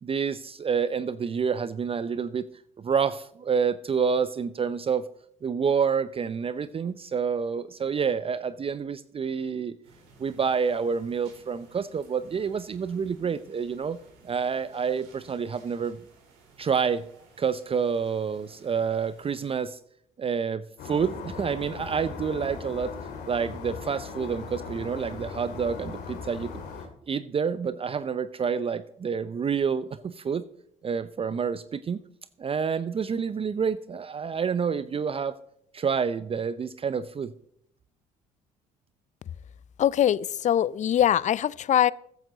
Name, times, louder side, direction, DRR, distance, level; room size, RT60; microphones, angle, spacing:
voice 1, 0.0-2.5 2.8-5.1 5.4-9.8 10.2-14.0 14.2-16.0 16.6-17.0 17.4-19.8 20.2-22.9 23.3-26.5 27.1-30.5 30.8-32.0 32.4-35.4 35.7-37.3, right 6 dB, 35° right, 15 dB, 0.6 m, -28 dB
sound 1, 9.8-19.7, right 3 dB, 80° right, 3.7 m, -57 dB
sound 2, 20.8-26.9, left 5 dB, 70° left, 2.9 m, -39 dB
voice 2, 39.8-41.9, left 10 dB, 45° left, 22 dB, 0.5 m, -22 dB
14.0 x 10.5 x 4.0 m, 0.69 s
hypercardioid pair, 60°, 17 cm